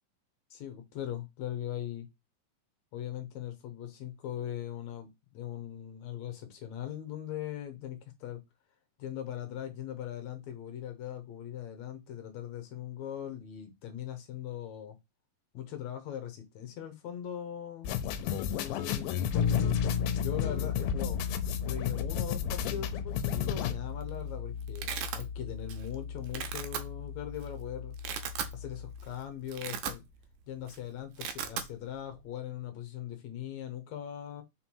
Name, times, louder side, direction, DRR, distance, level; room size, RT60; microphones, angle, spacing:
voice 1, 0.5-2.1 2.9-8.4 9.0-15.0 15.5-18.0 18.5-21.2 21.6-24.9 25.1-28.0 28.5-30.0 30.5-34.4, left 10 dB, 70° left, 1.8 m, -40 dB
sound 1, 17.8-23.7, left 9 dB, 90° left, 2.6 m, -34 dB
Bass guitar, 19.3-29.2, left 6 dB, 55° left, 1.7 m, -35 dB
Domestic sounds home sounds, 23.8-24.1 24.4-25.2 25.7-26.0 26.2-26.8 27.4-27.5 27.9-28.6 29.0-29.1 29.4-30.3 30.6-30.8 31.0-31.7, right 9 dB, 75° right, 2.4 m, -37 dB
5.7 x 3.9 x 4.5 m
omnidirectional pair, 4.2 m